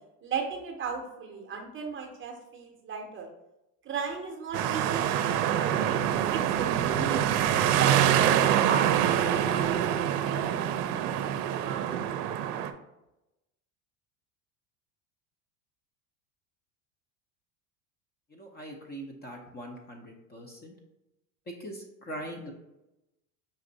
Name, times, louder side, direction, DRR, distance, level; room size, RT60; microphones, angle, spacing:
voice 1, 0.2-3.3 3.8-7.3 7.8-9.1 9.4-9.8 10.2-12.0, right 5 dB, 25° right, 2 dB, 0.7 m, -36 dB
sound 1, 4.5-12.7, right 10 dB, 80° right, 0.6 m, -25 dB
voice 2, 18.3-20.7 21.5-22.5, right 1 dB, 20° left, 1 dB, 0.6 m, -42 dB
5.4 x 2.5 x 3.9 m, 0.93 s
supercardioid pair, 115°, 46 cm